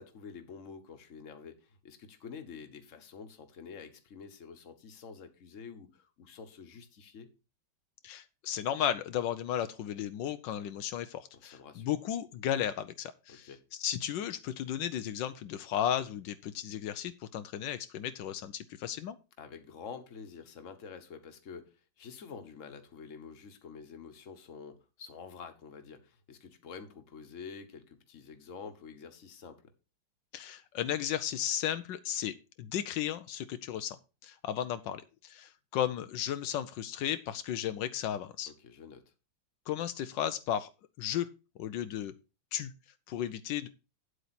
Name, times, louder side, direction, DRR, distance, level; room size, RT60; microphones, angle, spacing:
voice 1, 0.0-7.3 11.3-11.9 13.3-13.6 19.4-29.6 38.5-39.0, left 6 dB, 45° left, 8 dB, 1.5 m, -48 dB
voice 2, 8.0-13.5 13.8-19.2 30.3-34.0 34.2-38.5 39.7-40.7 41.0-41.3 41.6-42.1 42.5-42.7 43.1-43.7, left 10 dB, 80° left, 11 dB, 1.3 m, -34 dB
9.2 x 8.0 x 4.2 m, 0.31 s
omnidirectional pair, 2.0 m